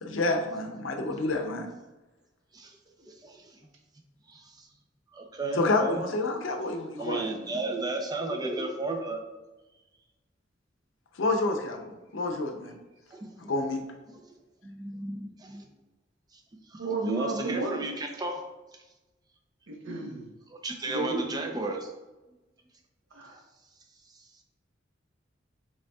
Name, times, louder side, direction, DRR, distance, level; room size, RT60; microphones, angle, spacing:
voice 1, 0.0-1.7 5.6-7.2 11.2-12.8 13.5-13.8, left 2 dB, 85° left, 4 dB, 0.6 m, -28 dB
voice 2, 2.5-3.6 4.3-4.7 5.1-6.0 7.0-9.2 13.1-13.5 14.1-14.2 14.6-15.7 16.3-16.4 16.7-18.4 18.7-18.8 20.5-21.9 23.3-23.4 24.0-24.4, right 2 dB, 20° right, 3 dB, 0.5 m, -34 dB
voice 3, 16.8-17.8 19.7-20.3 20.9-21.2 23.1-23.3, right 3 dB, 90° right, 0 dB, 1.0 m, -32 dB
5.2 x 3.6 x 2.3 m, 1.1 s
head